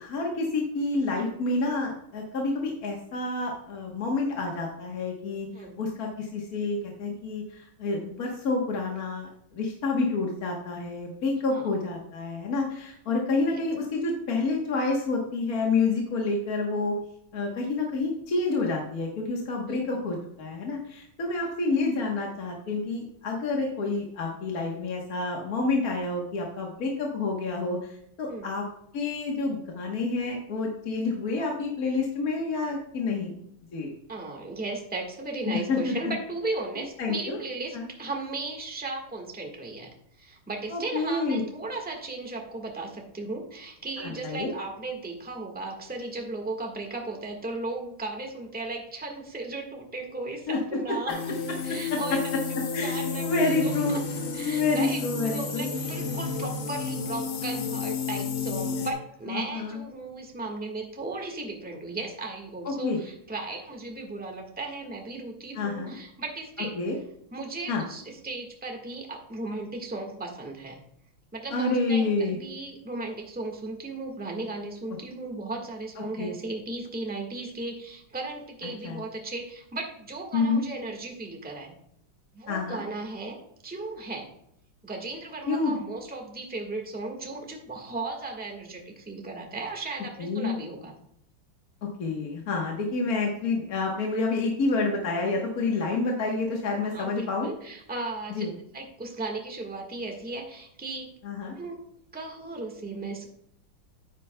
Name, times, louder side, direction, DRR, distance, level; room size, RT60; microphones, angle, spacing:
voice 1, 0.0-17.0 17.3-28.6 28.9-33.4 33.7-33.9 35.5-36.0 36.8-37.4 37.7-37.9 40.7-41.4 44.0-44.5 50.5-50.6 51.1-51.2 51.9-52.0 52.7-54.0 54.4-55.7 59.3-59.8 62.6-63.0 65.5-65.9 66.7-67.0 67.7-67.8 71.5-72.4 76.0-76.3 78.8-79.0 80.3-80.6 82.5-82.8 85.5-85.8 90.2-90.6 92.0-97.5 98.3-98.5 101.2-101.5, left 3 dB, 50° left, 0 dB, 1.5 m, -28 dB
voice 2, 19.6-20.1 28.3-28.5 34.1-39.9 40.2-51.1 51.6-53.2 53.5-54.0 54.3-66.8 67.3-70.8 71.3-81.7 82.3-83.4 83.6-84.3 84.8-90.9 96.8-98.5 98.7-101.1 101.5-101.8 102.1-103.3, right 2 dB, 5° right, 1 dB, 1.1 m, -36 dB
sound 1, 51.1-58.9, left 4 dB, 90° left, 2.0 m, -31 dB
9.9 x 9.0 x 2.2 m, 0.74 s
omnidirectional pair, 2.3 m